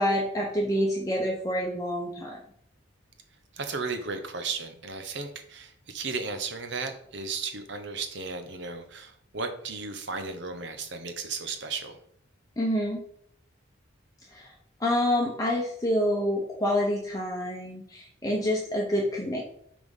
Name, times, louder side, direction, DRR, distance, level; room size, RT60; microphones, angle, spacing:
voice 1, 0.0-2.4 12.6-13.0 14.3-14.5 14.8-19.4, equal, 15° left, -2 dB, 0.9 m, -27 dB
voice 2, 3.5-12.0, right 4 dB, 60° right, 7 dB, 1.0 m, -35 dB
6.0 x 5.1 x 5.4 m, 0.68 s
head